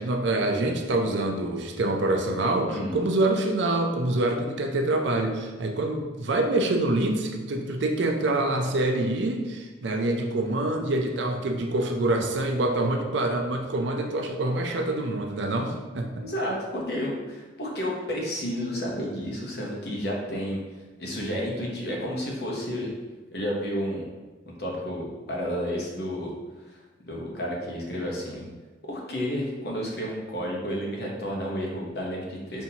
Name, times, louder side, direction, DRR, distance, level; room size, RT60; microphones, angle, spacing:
voice 1, 0.0-16.3, right 2 dB, 70° right, 4 dB, 0.5 m, -26 dB
voice 2, 16.1-20.6 21.0-22.9 23.3-24.0 24.5-26.3 26.7-28.4 28.8-32.6, equal, 55° left, -2 dB, 0.9 m, -31 dB
5.5 x 2.7 x 2.8 m, 1.3 s
head